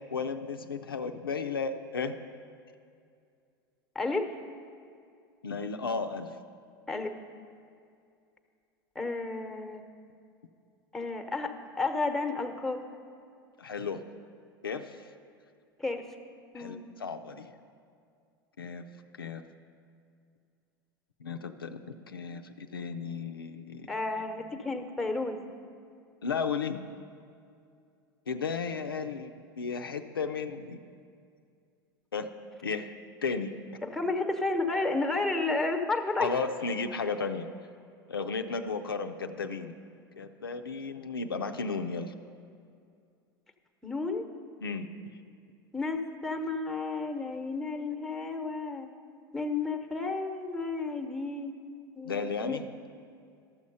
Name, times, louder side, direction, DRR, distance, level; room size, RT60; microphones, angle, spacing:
voice 1, 0.1-2.2 5.4-6.4 13.6-14.0 14.6-15.1 16.5-17.5 18.6-18.8 19.2-19.4 21.2-23.9 26.2-26.8 28.3-30.8 32.1-32.3 32.6-32.9 33.2-33.5 36.2-37.5 38.1-39.7 40.2-42.1 44.6-45.2 52.0-52.7, left 5 dB, 85° left, 6 dB, 0.5 m, -34 dB
voice 2, 3.9-4.3 6.9-7.1 8.9-9.8 10.9-12.8 15.8-16.1 16.5-16.9 23.9-25.6 33.8-36.3 43.8-44.3 45.7-48.9 49.3-51.5 51.9-52.6, left 3 dB, 5° left, 5 dB, 0.9 m, -32 dB
12.5 x 7.2 x 5.4 m, 2.4 s
figure-of-eight pair, 80°, 12 cm